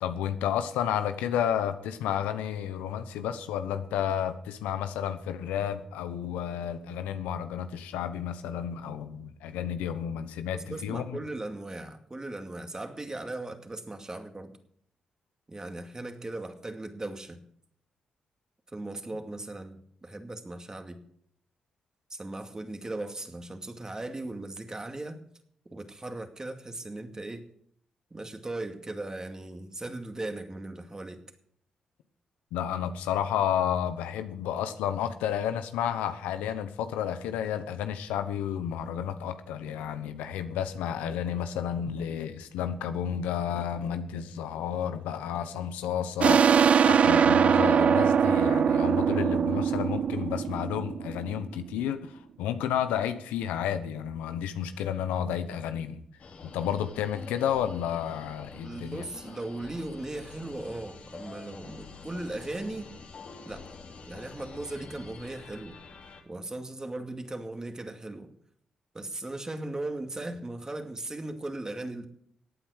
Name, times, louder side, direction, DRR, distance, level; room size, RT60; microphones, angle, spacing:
voice 1, 0.0-11.2 32.5-56.0 56.5-59.1, left 9 dB, 85° left, 1.0 m, -31 dB
voice 2, 10.5-14.6 15.5-17.4 18.7-21.0 22.1-25.2 25.7-27.5 28.1-31.2 58.6-62.9 63.4-63.7 64.0-65.8 66.3-68.3 68.9-72.1, right 2 dB, 25° right, 2.3 m, -38 dB
sound 1, 46.2-51.5, right 7 dB, 60° right, 0.7 m, -22 dB
sound 2, 56.2-66.2, left 4 dB, 60° left, 2.7 m, -47 dB
15.5 x 8.9 x 6.5 m
supercardioid pair, 45°, 3 cm